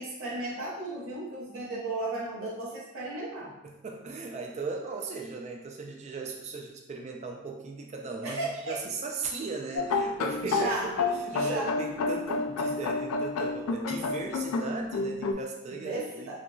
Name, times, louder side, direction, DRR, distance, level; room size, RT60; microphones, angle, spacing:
voice 1, 0.0-3.5 8.2-8.8 10.4-10.9 11.3-11.8 15.7-16.4, right 2 dB, 75° right, -4 dB, 0.6 m, -34 dB
voice 2, 3.6-10.7 11.0-16.4, right 4 dB, 35° right, 2 dB, 0.3 m, -38 dB
sound 1, 9.8-15.3, left 3 dB, 85° left, 0.3 m, -30 dB
2.9 x 2.5 x 2.2 m, 0.92 s
head